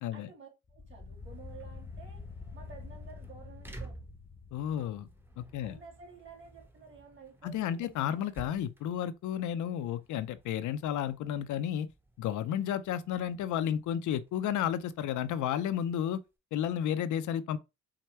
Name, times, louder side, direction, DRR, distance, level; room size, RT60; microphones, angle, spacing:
voice 1, 0.1-2.2 2.5-4.0 5.6-8.2, right 5 dB, 40° right, 2.5 m, -52 dB
sound 1, 0.7-6.0, left 4 dB, 20° left, 0.7 m, -47 dB
sound 2, 1.0-16.3, right 2 dB, 5° right, 0.9 m, -54 dB
voice 2, 4.5-5.1 5.4-5.8 7.4-11.9 12.2-16.2 16.5-17.6, left 10 dB, 75° left, 0.5 m, -32 dB
4.7 x 2.2 x 4.3 m
cardioid pair, 90°, 30 cm